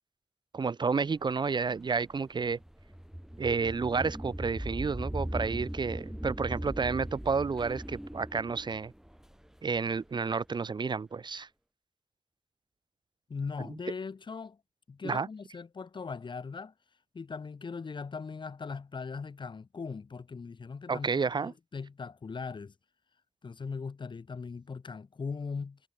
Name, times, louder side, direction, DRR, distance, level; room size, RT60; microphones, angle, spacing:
voice 1, 0.5-2.6 3.4-8.9 9.6-11.5 15.0-15.3 20.9-21.5, right 5 dB, 50° right, 1.2 m, -30 dB
sound 1, 1.3-10.3, equal, 5° right, 1.5 m, -39 dB
voice 2, 13.3-14.6 14.9-16.7 17.1-21.1 21.4-22.7 23.4-25.8, left 5 dB, 55° left, 2.5 m, -39 dB
wide cardioid pair, 85°, 9 cm